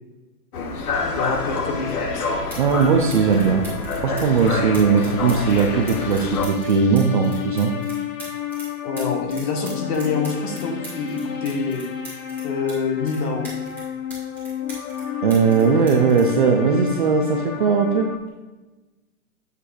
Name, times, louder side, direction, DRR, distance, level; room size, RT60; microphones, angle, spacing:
sound 1, 0.5-6.5, left 3 dB, 80° left, 1.2 m, -28 dB
sound 2, 0.9-18.2, left 10 dB, 60° left, 1.2 m, -32 dB
voice 1, 1.1-2.3 8.8-11.8 12.4-13.4, left 4 dB, 25° left, 4 dB, 0.8 m, -26 dB
sound 3, 2.5-2.8 3.1-8.7 9.0-12.8 13.1-15.0 15.3-17.1 18.1-18.3, right 1 dB, 5° left, 2.2 m, -40 dB
voice 2, 2.6-3.7 3.9-7.7 15.2-18.1, right 5 dB, 35° right, 4 dB, 0.5 m, -19 dB
8.2 x 3.3 x 4.8 m, 1.2 s
hypercardioid pair, 155°, 44 cm